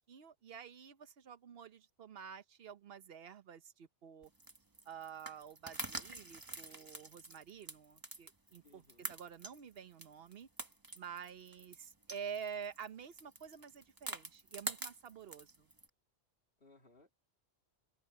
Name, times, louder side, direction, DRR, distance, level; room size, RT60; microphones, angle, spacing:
voice 1, 0.1-4.3 4.9-10.5 10.9-15.7, right 7 dB, 60° right, 1.0 m, -49 dB
sound 1, 4.2-15.9, right 2 dB, 20° right, 1.2 m, -47 dB
voice 2, 8.6-9.2 16.6-17.1, left 3 dB, 55° left, 2.8 m, -64 dB
open air
omnidirectional pair, 1.2 m